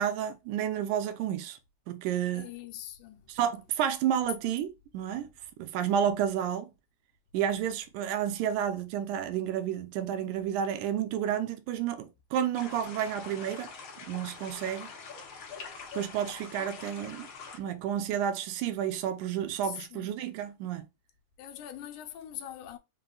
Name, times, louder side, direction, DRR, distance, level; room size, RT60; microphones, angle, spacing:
voice 1, 0.0-1.6 1.9-2.5 3.3-5.3 5.6-6.7 7.3-13.7 14.1-14.9 15.9-17.3 17.6-20.9, right 9 dB, 80° right, 2.0 m, -31 dB
voice 2, 2.3-3.2 16.6-16.7 19.6-20.2 21.4-22.8, left 11 dB, 80° left, 2.0 m, -43 dB
sound 1, 12.5-17.6, left 5 dB, 65° left, 1.4 m, -44 dB
5.4 x 2.1 x 3.8 m
omnidirectional pair, 3.6 m